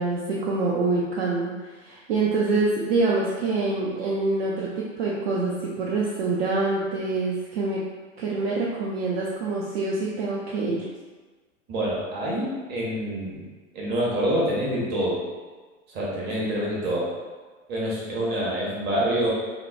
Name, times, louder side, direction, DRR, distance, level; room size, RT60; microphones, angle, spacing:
voice 1, 0.0-7.8 8.2-10.9, right 3 dB, 55° right, -5 dB, 0.5 m, -26 dB
voice 2, 11.7-13.5 13.7-15.2 15.9-17.1 17.7-19.3, right 1 dB, 25° right, -5 dB, 0.8 m, -26 dB
2.9 x 2.1 x 2.5 m, 1.3 s
figure-of-eight pair, 90°, 38 cm